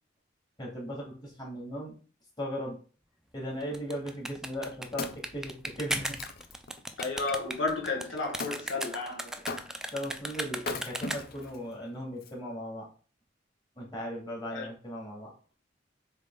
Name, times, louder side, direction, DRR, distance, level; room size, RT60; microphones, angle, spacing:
voice 1, 0.6-2.0 2.4-2.8 3.3-6.2 9.9-12.9 13.8-15.3, equal, 25° left, 2.4 m, -37 dB
sound 1, 3.6-11.5, right 1 dB, 5° right, 0.4 m, -37 dB
Wood, 4.5-7.4 8.4-8.6 9.5-10.0 10.6-11.6 12.2-12.3, left 3 dB, 55° left, 0.6 m, -39 dB
voice 2, 7.0-9.3 14.5-14.7, left 3 dB, 85° left, 1.6 m, -32 dB
7.5 x 3.3 x 3.8 m
head